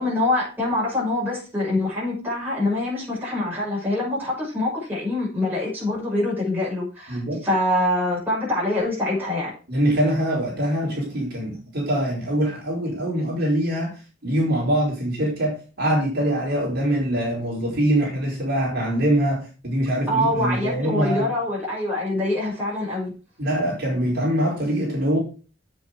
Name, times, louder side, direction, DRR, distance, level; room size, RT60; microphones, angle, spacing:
voice 1, 0.0-9.5 20.1-23.1, left 1 dB, 10° right, -6 dB, 6.5 m, -25 dB
voice 2, 7.1-7.4 9.7-13.9 14.2-21.3 23.4-25.2, right 1 dB, 50° right, -4 dB, 4.7 m, -23 dB
8.3 x 7.6 x 5.0 m, 0.35 s
head